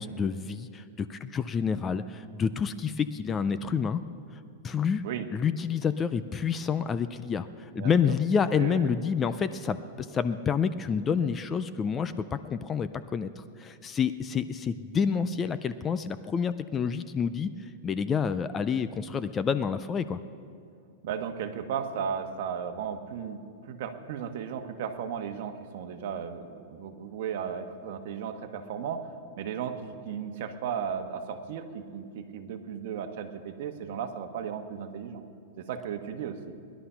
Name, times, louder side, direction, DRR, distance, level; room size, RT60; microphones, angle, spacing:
voice 1, 0.0-4.0 4.6-5.0 5.3-20.2, left 6 dB, 15° left, 13 dB, 0.4 m, -28 dB
voice 2, 7.8-8.1 8.5-8.9 21.0-29.0 29.4-35.2 35.6-36.4, right 7 dB, 55° right, 7 dB, 1.2 m, -35 dB
19.5 x 11.5 x 5.7 m, 2.3 s
supercardioid pair, 165°, 0 cm